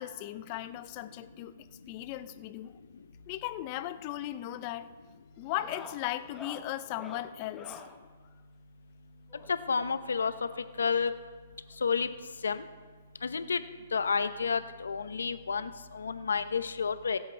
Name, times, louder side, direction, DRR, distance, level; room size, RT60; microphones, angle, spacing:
voice 1, 0.0-1.5 1.9-2.7 3.3-4.9 5.4-7.8, left 14 dB, 35° left, 13 dB, 0.6 m, -37 dB
sound 1, 3.9-4.3 4.5-4.9 5.4-8.0 9.3-10.7 11.7-11.8 12.0-12.2 12.6-12.7 14.0-14.1 15.4-15.5, left 5 dB, 15° left, 1.1 m, -49 dB
voice 2, 9.7-10.3 10.8-11.1 11.8-12.1 12.4-12.6 13.2-13.6 13.9-17.2, left 5 dB, 90° left, 12 dB, 0.8 m, -30 dB
24.0 x 8.1 x 3.4 m, 1.5 s
hypercardioid pair, 145°, 0 cm